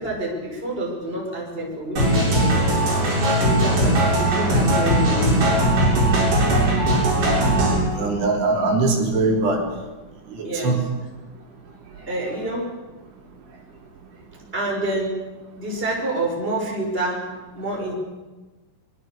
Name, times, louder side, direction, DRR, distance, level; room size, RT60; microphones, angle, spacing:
voice 1, 0.0-2.9 3.3-5.6 10.4-10.8 12.1-12.8 14.5-15.2 15.5-17.3 17.5-17.9, right 1 dB, 10° right, -1 dB, 5.7 m, -28 dB
sound 1, 2.0-7.8, right 1 dB, 40° right, 8.7 m, -19 dB
voice 2, 7.9-9.6 10.3-10.8, right 3 dB, 60° right, 0 dB, 5.4 m, -21 dB
25.0 x 22.5 x 6.8 m, 1.2 s
omnidirectional pair, 5.6 m